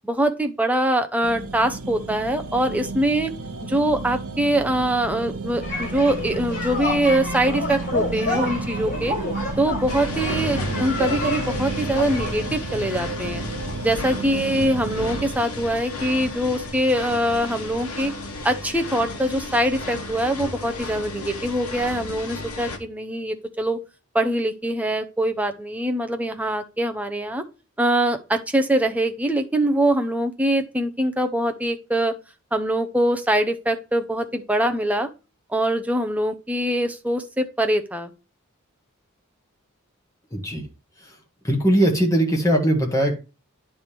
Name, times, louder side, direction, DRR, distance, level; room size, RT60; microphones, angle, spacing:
voice 1, 0.0-3.3 3.6-9.2 9.6-13.4 13.8-18.1 18.4-23.8 24.1-27.4 27.8-32.1 32.5-35.1 35.5-38.1, right 1 dB, 5° right, 5 dB, 0.6 m, -23 dB
sound 1, 1.2-15.3, right 3 dB, 90° right, 0.9 m, -32 dB
sound 2, 5.6-12.3, left 2 dB, 40° left, 3.8 m, -29 dB
sound 3, 9.9-22.8, left 2 dB, 85° left, 1.2 m, -33 dB
voice 2, 40.3-40.7 41.0-41.2 41.4-43.1, right 1 dB, 15° left, 1 dB, 1.6 m, -20 dB
9.7 x 3.4 x 4.4 m, 0.30 s
head